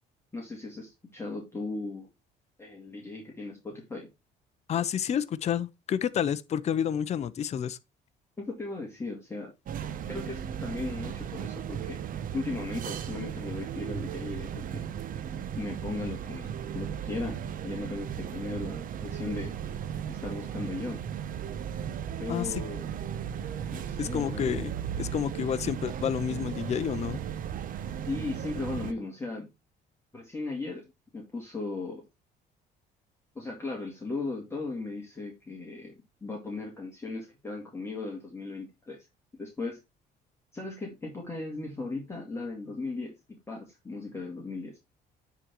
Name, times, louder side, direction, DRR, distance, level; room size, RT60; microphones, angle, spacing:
voice 1, 0.3-2.1 2.6-4.1 8.4-9.5 10.1-12.0 12.3-14.8 15.6-17.4 17.6-19.5 20.1-21.0 22.2-22.9 23.7-24.6 28.0-29.5 30.1-30.8 31.1-32.1 33.3-35.9 36.2-39.0 39.4-39.8 40.5-43.1 43.5-44.8, left 3 dB, 15° left, 2.4 m, -37 dB
voice 2, 4.7-7.8 22.3-22.6 24.0-27.2, left 9 dB, 40° left, 0.6 m, -30 dB
sound 1, 9.7-28.9, right 9 dB, 55° right, 0.9 m, -36 dB
9.7 x 3.9 x 4.5 m
cardioid pair, 110°, 17 cm